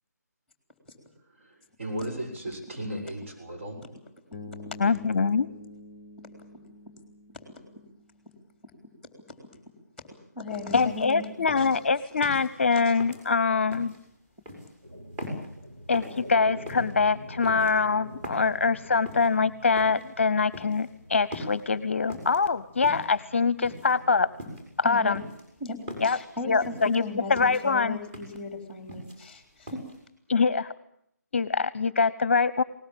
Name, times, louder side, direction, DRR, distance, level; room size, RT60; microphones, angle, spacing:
voice 1, 1.3-3.8, right 1 dB, 45° right, 2 dB, 7.2 m, -36 dB
Bass guitar, 4.3-8.4, left 2 dB, 20° left, 1.2 m, -46 dB
voice 2, 4.8-5.5 10.7-13.9 15.9-24.3 24.8-25.2 26.0-26.2 26.4-27.0 27.3-28.0 30.3-30.7 31.3-32.6, left 4 dB, 45° left, 18 dB, 0.9 m, -24 dB
voice 3, 10.4-11.3 11.6-11.8 12.7-12.9 24.8-25.2 25.6-25.8 26.0-29.8, left 3 dB, ahead, 6 dB, 3.7 m, -36 dB
sound 1, 10.7-11.1 11.5-12.5 13.0-14.0 14.4-14.7 15.2-15.5 15.9-16.2 16.7-16.9 17.4-18.5 19.0-19.3 19.8-20.1 20.5-20.9 21.3-21.6 22.1-22.4 22.8-23.2 23.6-24.0 24.4-24.7 25.1-26.2 26.6-27.0 27.4-27.7 28.1-28.4 28.7-29.4 29.7-30.0, left 1 dB, 15° right, 6.1 m, -40 dB
sound 2, 14.8-25.1, equal, 85° right, 7.1 m, -46 dB
21.0 x 19.5 x 8.9 m, 0.71 s
figure-of-eight pair, 155°, 9 cm